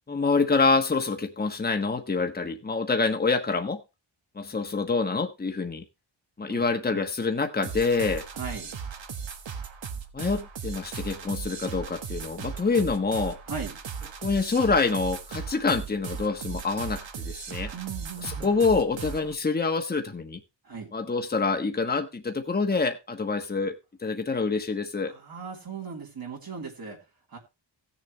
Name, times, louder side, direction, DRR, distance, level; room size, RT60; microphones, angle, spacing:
voice 1, 0.1-3.8 4.4-5.8 6.4-8.2 10.1-13.4 14.2-17.7 18.4-20.4 20.9-23.7 24.0-25.1, left 4 dB, 20° left, 5 dB, 1.2 m, -26 dB
voice 2, 6.5-7.1 8.3-8.7 13.4-13.8 17.7-18.6 20.6-20.9 25.1-27.4, right 5 dB, 50° right, -1 dB, 3.2 m, -38 dB
sound 1, 7.6-19.3, right 6 dB, 70° right, 1.7 m, -37 dB
17.5 x 7.1 x 3.1 m, 0.26 s
wide cardioid pair, 170°, 46 cm